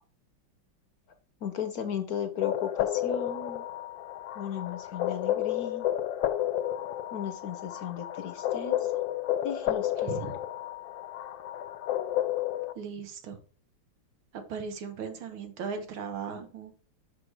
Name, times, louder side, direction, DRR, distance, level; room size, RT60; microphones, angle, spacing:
voice 1, 1.4-3.6 4.3-5.9 7.1-8.9 9.4-10.3, left 8 dB, 60° left, 9 dB, 1.0 m, -36 dB
sound 1, 2.4-12.7, left 12 dB, 75° left, 1.4 m, -31 dB
voice 2, 12.8-13.4 14.5-16.7, right 6 dB, 85° right, 7 dB, 2.1 m, -37 dB
6.5 x 5.1 x 4.6 m, 0.42 s
omnidirectional pair, 2.2 m